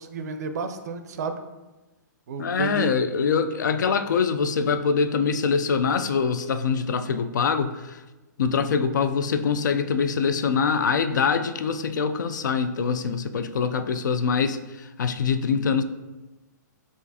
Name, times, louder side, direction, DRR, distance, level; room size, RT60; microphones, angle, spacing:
voice 1, 0.0-1.4 2.3-3.0 8.5-8.7, right 4 dB, 60° right, 7 dB, 0.4 m, -32 dB
voice 2, 2.4-8.0 8.4-15.8, left 6 dB, 75° left, 9 dB, 0.4 m, -24 dB
6.6 x 2.5 x 2.7 m, 1.1 s
hypercardioid pair, 125°, 10 cm